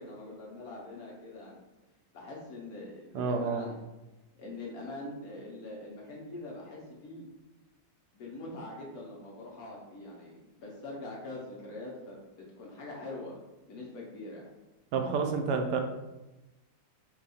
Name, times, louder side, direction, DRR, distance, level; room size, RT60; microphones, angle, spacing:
voice 1, 0.0-1.6 2.1-3.8 4.4-7.3 8.1-12.2 12.6-13.4 13.7-14.5, left 2 dB, 60° left, -3 dB, 1.2 m, -43 dB
voice 2, 3.1-3.7 14.9-15.8, right 5 dB, 75° right, 4 dB, 1.1 m, -29 dB
4.6 x 2.3 x 4.0 m, 1.0 s
omnidirectional pair, 1.9 m